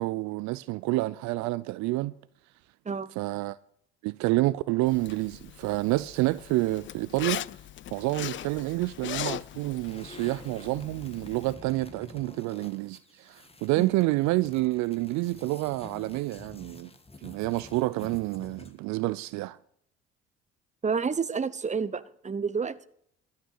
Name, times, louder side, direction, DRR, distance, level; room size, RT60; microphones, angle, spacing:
voice 1, 0.0-2.1 3.2-3.6 4.0-7.4 7.9-16.9 17.2-19.6, right 19 dB, 70° right, 0.5 m, -28 dB
Zipper (clothing), 4.9-11.5, left 12 dB, 40° left, 0.4 m, -39 dB
sound 1, 9.8-18.9, left 3 dB, 20° left, 1.7 m, -49 dB
voice 2, 20.8-22.9, right 5 dB, 25° right, 0.9 m, -29 dB
12.5 x 6.5 x 8.3 m
hypercardioid pair, 55°, 30 cm